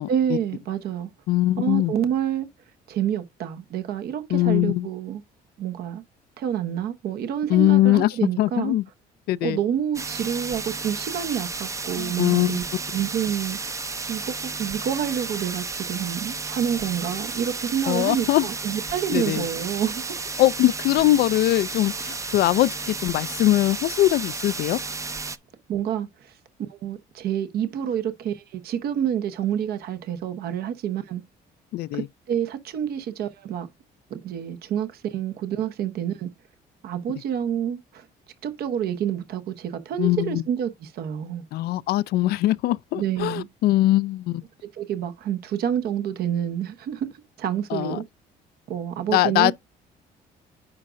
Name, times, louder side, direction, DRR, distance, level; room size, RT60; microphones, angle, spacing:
voice 1, 0.1-1.1 1.6-2.5 2.9-5.2 5.6-6.0 6.4-8.7 9.4-12.6 12.9-20.2 25.7-31.2 31.9-33.7 34.1-36.3 36.8-38.1 38.4-41.4 42.9-43.5 44.6-47.1 47.4-48.0 48.7-49.5, right 9 dB, 65° right, 0.9 m, -28 dB
voice 2, 1.3-1.9 4.3-4.9 7.5-8.8 9.3-9.6 12.0-12.6 17.9-18.5 19.1-19.5 20.4-24.8 31.7-32.1 40.0-40.4 41.5-44.4 47.7-48.0 49.1-49.5, left 15 dB, 70° left, 0.4 m, -21 dB
sound 1, 9.9-25.4, right 4 dB, 20° right, 0.5 m, -33 dB
9.6 x 5.0 x 2.5 m
cardioid pair, 110°, 17 cm